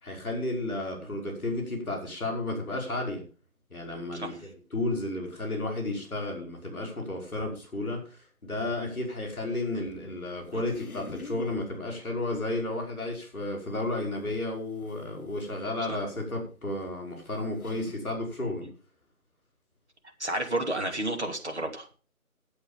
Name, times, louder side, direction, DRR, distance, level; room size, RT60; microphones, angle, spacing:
voice 1, 0.0-3.2 3.7-18.7, left 2 dB, 5° left, -17 dB, 4.3 m, -32 dB
sound 1, 10.4-11.6 13.6-13.7 14.8-14.9 16.4-16.5 17.1-17.2 17.5-18.0, left 4 dB, 75° left, 1.2 m, -44 dB
voice 2, 20.2-21.9, right 1 dB, 50° right, 3 dB, 2.7 m, -31 dB
12.0 x 8.4 x 5.4 m, 0.36 s
figure-of-eight pair, 180°, 43 cm